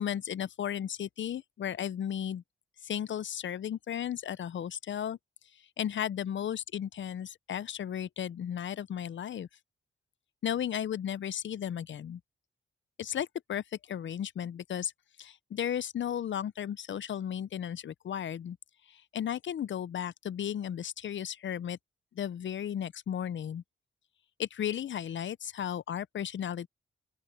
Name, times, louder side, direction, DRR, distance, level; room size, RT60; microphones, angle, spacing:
voice 1, 0.0-2.4 2.8-5.2 5.8-9.5 10.4-12.2 13.0-14.9 15.2-18.6 19.1-21.8 22.2-23.6 24.4-26.7, left 9 dB, 65° left, 0.5 m, -34 dB
open air
cardioid pair, 75°, 21 cm